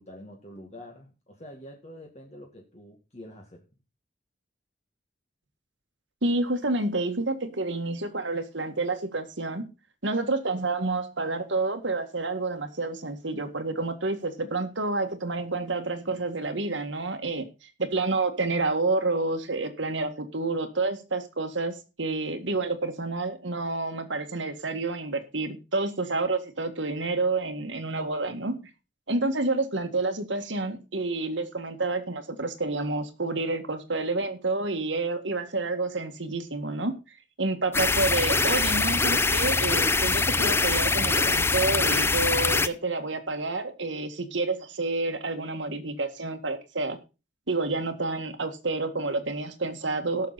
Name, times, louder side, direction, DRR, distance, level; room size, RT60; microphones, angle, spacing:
voice 1, 0.0-3.6, left 1 dB, 35° left, 1 dB, 1.8 m, -46 dB
voice 2, 6.2-9.6 10.0-28.7 29.1-36.9 37.4-47.0 47.5-50.3, right 3 dB, 80° right, 6 dB, 1.9 m, -29 dB
sound 1, 37.7-42.7, left 3 dB, 15° left, 0.5 m, -23 dB
17.5 x 6.7 x 4.1 m, 0.30 s
head